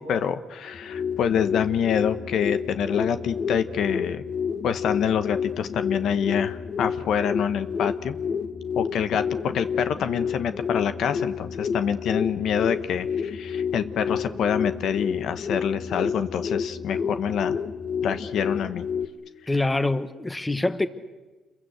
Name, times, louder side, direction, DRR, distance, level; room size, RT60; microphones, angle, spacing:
voice 1, 0.0-4.2 4.6-8.2 8.7-17.6 18.0-18.9, left 8 dB, 75° left, 10 dB, 1.0 m, -26 dB
sound 1, 0.7-19.1, left 6 dB, 50° left, 1.3 m, -30 dB
voice 2, 19.5-20.9, left 2 dB, 15° left, 11 dB, 1.4 m, -25 dB
28.5 x 22.5 x 8.1 m, 1.3 s
cardioid pair, 90°, 0 cm